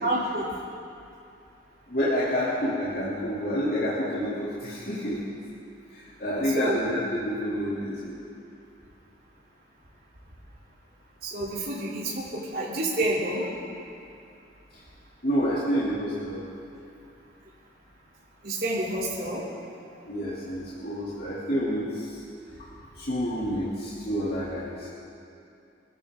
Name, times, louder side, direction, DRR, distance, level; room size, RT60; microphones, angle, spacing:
voice 1, 0.0-0.5 6.5-6.8 11.2-13.4 18.4-19.4, right 1 dB, 55° right, -7 dB, 3.3 m, -28 dB
voice 2, 1.9-5.2 5.9-8.2 15.2-16.4 20.0-22.2 22.6-22.7 23.0-24.9, equal, 60° left, -8 dB, 2.9 m, -28 dB
24.5 x 15.0 x 3.8 m, 2.6 s
head